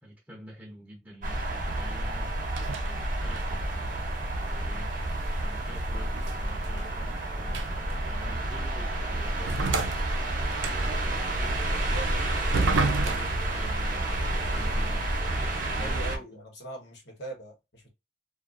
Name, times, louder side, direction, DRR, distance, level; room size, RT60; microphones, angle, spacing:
voice 1, 0.0-2.3 2.8-4.9 5.4-9.8 10.5-16.4, equal, 10° right, 0.8 m, -48 dB
sound 1, 1.2-16.2, right 1 dB, 50° right, 0.8 m, -30 dB
sound 2, 2.5-2.9 3.3-3.6 5.2-7.1 7.5-7.9 8.6-8.7 9.5-11.0 12.5-13.5, right 3 dB, 90° right, 0.5 m, -30 dB
sound 3, 9.1-15.2, equal, 85° left, 0.8 m, -47 dB
voice 2, 9.4-9.8 11.8-12.2 15.8-17.9, right 2 dB, 65° left, 1.3 m, -41 dB
2.5 x 2.5 x 2.5 m
head